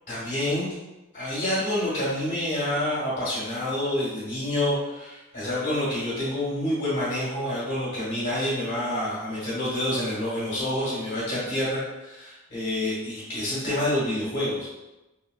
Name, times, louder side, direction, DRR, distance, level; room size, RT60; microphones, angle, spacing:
voice 1, 0.1-0.7 1.1-14.7, left 1 dB, 45° left, -11 dB, 1.5 m, -28 dB
4.1 x 2.2 x 2.4 m, 1.0 s
head